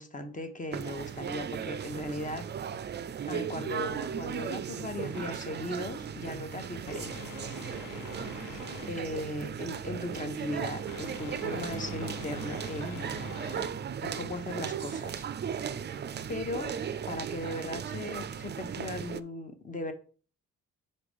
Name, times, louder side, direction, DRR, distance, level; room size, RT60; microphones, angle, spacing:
voice 1, 0.0-2.4 3.2-7.3 8.9-13.3 14.0-15.3 15.7-16.0 16.3-16.8 17.1-19.9, left 1 dB, 25° left, 8 dB, 1.2 m, -38 dB
sound 1, 0.7-19.2, right 8 dB, 35° right, 0.4 m, -37 dB
sound 2, 5.1-14.4, left 7 dB, 90° left, 0.8 m, -46 dB
4.9 x 4.2 x 5.2 m, 0.41 s
cardioid pair, 90°, 30 cm